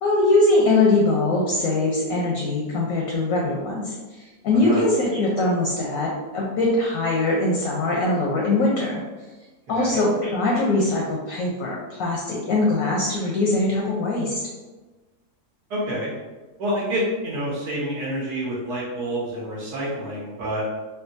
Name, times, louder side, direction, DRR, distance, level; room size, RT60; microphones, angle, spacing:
voice 1, 0.0-9.0 9.7-14.4, left 2 dB, 70° left, -3 dB, 0.9 m, -22 dB
voice 2, 9.7-10.0 15.7-16.1 16.6-20.6, equal, 75° right, -6 dB, 1.3 m, -28 dB
3.6 x 2.2 x 2.5 m, 1.2 s
omnidirectional pair, 1.8 m